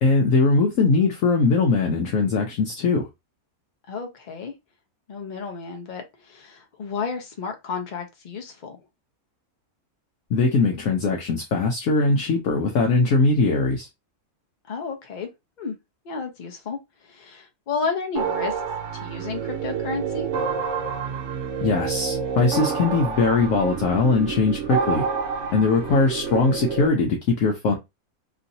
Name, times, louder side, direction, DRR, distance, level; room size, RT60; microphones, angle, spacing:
voice 1, 0.0-3.1 10.3-13.9 21.6-25.1 25.5-27.8, left 3 dB, 65° left, 1.0 m, -21 dB
voice 2, 3.9-4.5 5.1-8.8 14.7-15.3 15.6-15.7 16.0-16.8 17.0-18.6 18.9-20.3 25.5-25.7, left 5 dB, 45° left, 0.6 m, -32 dB
sound 1, 18.1-26.9, right 6 dB, 60° right, 0.9 m, -28 dB
3.1 x 2.7 x 2.6 m
omnidirectional pair, 1.5 m